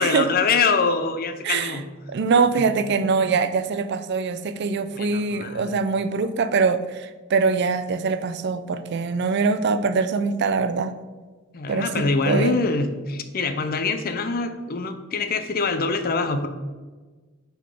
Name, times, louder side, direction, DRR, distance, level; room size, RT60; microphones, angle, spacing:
voice 1, 0.0-1.9 2.5-2.6 4.9-5.7 11.5-16.5, left 4 dB, 45° left, 8 dB, 0.5 m, -24 dB
voice 2, 1.4-1.8 2.1-10.9 11.7-12.5, right 4 dB, 55° right, 11 dB, 0.4 m, -23 dB
5.6 x 3.9 x 4.8 m, 1.3 s
head